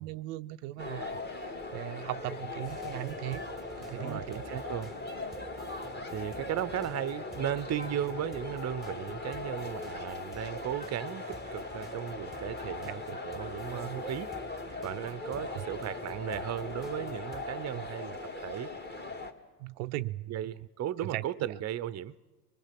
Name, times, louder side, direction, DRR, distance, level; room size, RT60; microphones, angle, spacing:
voice 1, 0.0-3.5 3.8-4.6 12.9-13.2 13.7-14.1 15.4-15.6 17.7-17.9 19.6-20.4 21.1-21.2, right 17 dB, 75° right, 0.6 m, -39 dB
sound 1, 0.8-19.3, left 3 dB, 20° left, 2.0 m, -39 dB
sound 2, 2.6-17.5, right 2 dB, ahead, 1.3 m, -50 dB
voice 2, 3.9-5.0 6.1-14.3 14.8-18.7 20.3-22.1, right 11 dB, 35° right, 0.7 m, -36 dB
25.0 x 20.5 x 5.9 m
hypercardioid pair, 85°, 48 cm